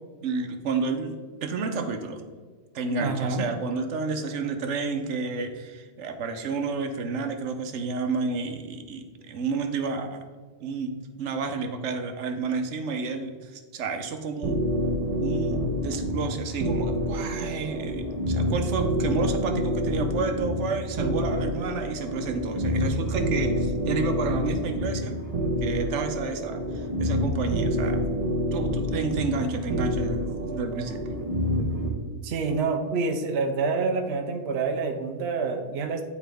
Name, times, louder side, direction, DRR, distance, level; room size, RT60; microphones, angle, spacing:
voice 1, 0.2-1.2 1.4-2.2 2.7-10.2 10.6-10.9 11.2-14.6 15.2-25.2 25.6-28.0 28.5-31.0, right 4 dB, 90° right, 6 dB, 1.1 m, -30 dB
voice 2, 3.0-3.5 32.2-36.0, right 4 dB, 70° right, 5 dB, 0.9 m, -27 dB
sound 1, 14.4-31.9, equal, 35° right, 1.0 m, -27 dB
9.4 x 4.6 x 3.4 m, 1.5 s
omnidirectional pair, 1.2 m